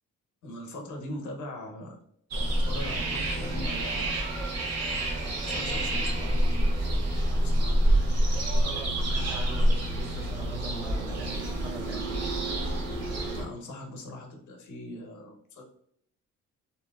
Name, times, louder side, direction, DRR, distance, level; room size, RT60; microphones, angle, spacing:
voice 1, 0.4-2.0 2.3-4.2 5.1-6.7 7.1-7.9 13.3-15.6, left 1 dB, 75° left, 0.9 m, -41 dB
sound 1, 2.3-13.4, right 1 dB, 55° right, 0.8 m, -27 dB
voice 2, 8.6-12.2, right 2 dB, 10° right, 0.6 m, -42 dB
2.9 x 2.6 x 2.3 m
cardioid pair, 90°, 30 cm